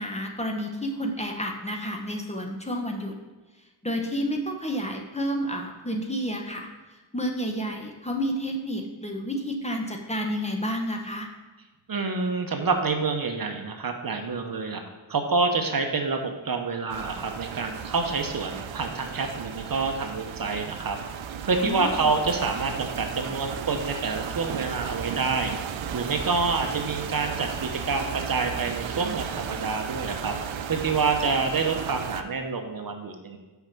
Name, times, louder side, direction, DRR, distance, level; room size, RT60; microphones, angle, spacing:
voice 1, 0.0-3.1 3.8-6.7 7.1-11.3 21.6-22.1, equal, 15° left, 2 dB, 0.9 m, -30 dB
voice 2, 11.9-14.8 15.1-21.0 21.5-25.5 25.9-30.3 30.7-33.4, right 4 dB, 50° right, 5 dB, 0.9 m, -27 dB
sound 1, 16.9-32.2, right 8 dB, 85° right, 0.6 m, -35 dB
5.7 x 5.6 x 5.9 m, 1.2 s
wide cardioid pair, 100°, 45 cm